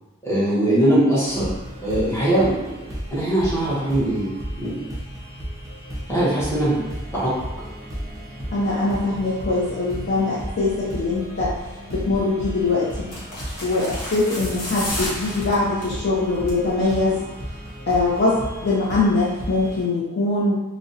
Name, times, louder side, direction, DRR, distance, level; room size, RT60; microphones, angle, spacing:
voice 1, 0.2-1.5 1.8-2.7 3.1-4.3 4.6-4.9 6.1-6.8 7.1-7.3, right 1 dB, 15° left, -9 dB, 0.8 m, -21 dB
sound 1, 1.2-19.8, equal, 15° right, 0.4 m, -34 dB
voice 2, 8.5-11.5 11.9-13.1 13.6-17.2 17.9-20.5, left 3 dB, 45° left, -6 dB, 0.4 m, -22 dB
sound 2, 12.0-12.3 13.0-16.0 16.3-16.7 17.0-17.1, left 1 dB, 90° left, 1.0 m, -32 dB
2.5 x 2.0 x 2.6 m, 1.1 s
head